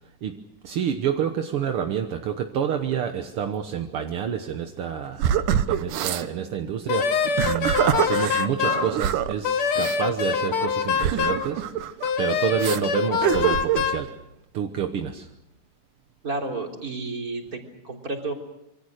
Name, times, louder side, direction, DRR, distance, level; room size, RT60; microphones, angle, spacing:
voice 1, 0.2-5.3 5.7-14.2 14.5-15.3, right 8 dB, 60° right, 5 dB, 1.6 m, -28 dB
sound 1, 5.2-6.3 7.2-9.3 9.8-10.0 11.0-12.1 12.6-12.8 13.2-13.9, right 10 dB, 75° right, 2.5 m, -25 dB
Wind instrument woodwind instrument, 6.9-8.9 9.4-11.5 12.0-14.0, left 6 dB, 55° left, 1.8 m, -24 dB
voice 2, 16.2-18.3, right 3 dB, 25° right, 2 dB, 3.8 m, -31 dB
27.0 x 24.0 x 6.5 m, 0.83 s
omnidirectional pair, 3.8 m